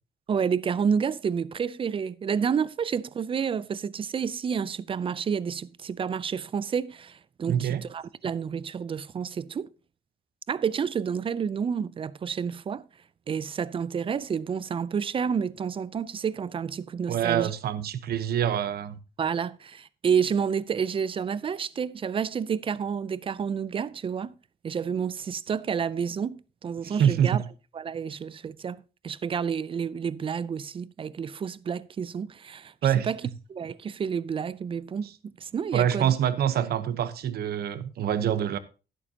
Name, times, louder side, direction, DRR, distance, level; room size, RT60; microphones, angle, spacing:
voice 1, 0.3-9.7 10.5-12.8 13.3-17.5 19.2-24.3 24.6-27.4 27.7-33.2 33.5-36.1, right 7 dB, 30° right, 0.4 m, -30 dB
voice 2, 7.5-7.8 17.1-19.0 26.8-27.4 32.8-33.1 35.7-38.6, right 9 dB, 70° right, 0.9 m, -25 dB
11.5 x 11.0 x 2.8 m
cardioid pair, 135°, 17 cm